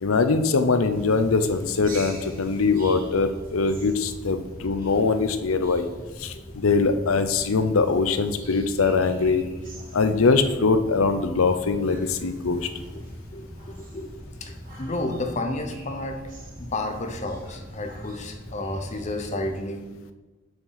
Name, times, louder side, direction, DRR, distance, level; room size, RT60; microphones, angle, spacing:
voice 1, 0.0-5.9 6.2-9.4 9.9-12.7, left 4 dB, 90° left, 10 dB, 0.6 m, -22 dB
sound 1, 0.9-19.6, equal, 40° right, 2.1 m, -41 dB
voice 2, 13.3-14.1 14.4-16.2 16.6-19.9, left 2 dB, 35° left, 5 dB, 0.9 m, -31 dB
7.1 x 6.6 x 4.1 m, 1.2 s
head